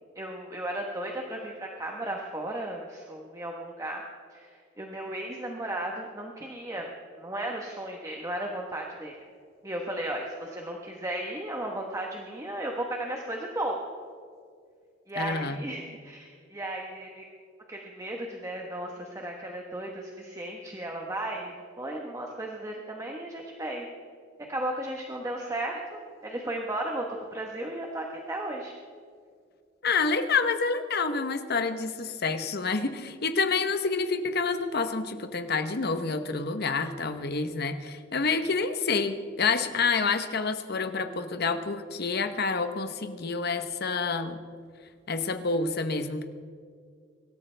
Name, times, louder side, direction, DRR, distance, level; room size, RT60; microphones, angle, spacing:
voice 1, 0.1-4.0 4.3-6.9 7.2-9.1 9.6-13.8 15.1-17.2 17.7-23.9 24.5-27.0 27.3-28.7, right 1 dB, 15° right, 0 dB, 1.2 m, -35 dB
voice 2, 15.2-15.6 29.8-44.4 45.1-46.2, left 4 dB, 55° left, 9 dB, 1.0 m, -28 dB
24.0 x 13.0 x 3.4 m, 2.2 s
head